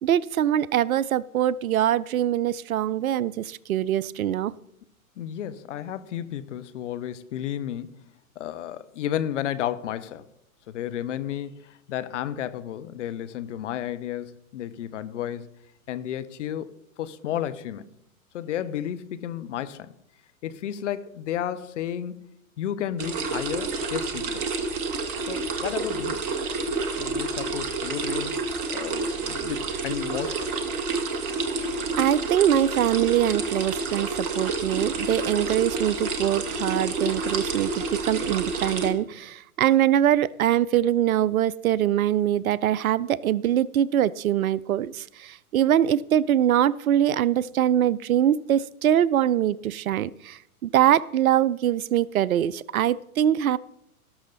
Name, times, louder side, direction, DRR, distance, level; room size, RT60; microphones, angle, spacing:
voice 1, 0.0-4.5 32.0-53.6, right 11 dB, 70° right, 0.6 m, -23 dB
voice 2, 5.2-8.0 8.4-10.3 10.7-15.5 15.9-17.9 18.3-19.9 20.4-24.5 25.3-26.2 27.0-28.4 28.7-30.5, left 10 dB, 55° left, 0.9 m, -32 dB
sound 1, 23.0-38.9, right 3 dB, 10° right, 0.3 m, -29 dB
18.0 x 6.4 x 4.0 m
hypercardioid pair, 120°, 44 cm